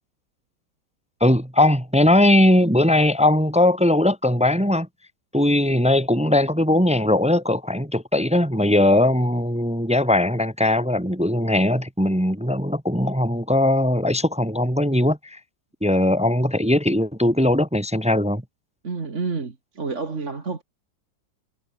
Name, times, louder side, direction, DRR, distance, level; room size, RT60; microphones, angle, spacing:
voice 1, 1.2-4.9 5.3-15.4 15.8-18.4, left 1 dB, 5° right, 0.5 m, -19 dB
voice 2, 18.8-20.6, right 4 dB, 35° right, 2.4 m, -29 dB
omnidirectional pair, 2.2 m